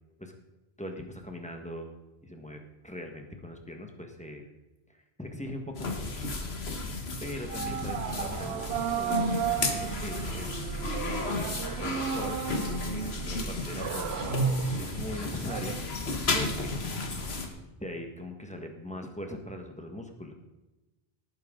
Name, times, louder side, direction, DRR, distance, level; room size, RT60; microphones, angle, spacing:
voice 1, 0.8-1.9 2.2-4.5 4.9-6.0 7.2-8.7 8.9-10.8 11.8-14.2 14.8-15.8 16.3-16.7 17.8-20.3, left 1 dB, 5° left, 3 dB, 1.5 m, -41 dB
sound 1, 5.8-17.5, left 1 dB, 80° left, 1.6 m, -32 dB
sound 2, 7.5-15.8, right 9 dB, 90° right, 0.9 m, -35 dB
18.0 x 9.1 x 3.9 m, 1.1 s
omnidirectional pair, 1.0 m